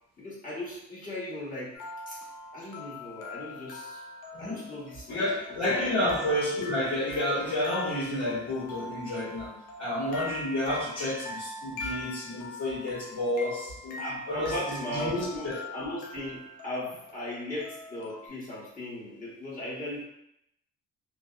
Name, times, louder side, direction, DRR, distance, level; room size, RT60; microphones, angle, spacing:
voice 1, 0.2-2.2 2.5-4.0 4.4-5.9 14.0-20.0, left 1 dB, 30° left, -8 dB, 1.2 m, -38 dB
sound 1, 1.7-18.3, left 2 dB, 85° left, 0.6 m, -42 dB
voice 2, 4.3-4.7 5.1-14.0 14.3-15.6, left 1 dB, 55° left, -11 dB, 1.3 m, -30 dB
2.6 x 2.0 x 2.3 m, 0.77 s
cardioid pair, 90°, 30 cm